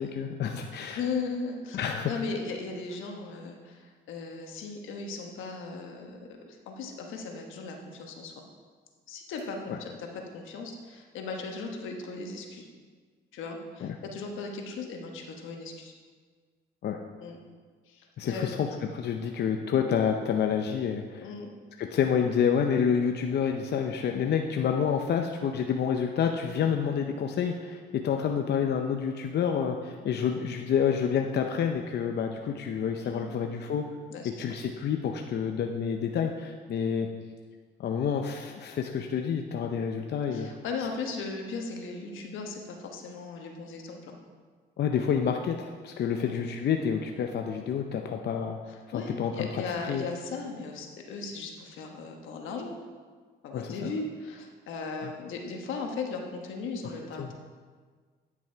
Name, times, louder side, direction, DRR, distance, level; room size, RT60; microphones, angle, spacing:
voice 1, 0.0-1.0 1.7-2.1 9.7-9.8 13.8-14.0 16.8-17.0 18.2-21.3 21.8-33.9 34.2-37.1 37.8-40.5 44.8-48.6 48.9-49.5 49.9-50.0 53.5-53.9 55.0-55.1 57.2-57.3, left 7 dB, 60° left, 4 dB, 0.6 m, -28 dB
voice 2, 0.9-1.8 2.1-6.2 6.5-8.3 9.1-12.7 13.3-15.9 17.2-17.4 17.9-18.8 21.2-21.5 30.0-30.1 33.0-33.4 34.1-34.4 40.3-44.2 46.1-46.3 48.9-52.8 53.4-57.3, left 4 dB, 85° left, 2 dB, 1.2 m, -37 dB
9.6 x 6.1 x 4.5 m, 1.5 s
cardioid pair, 90°, 20 cm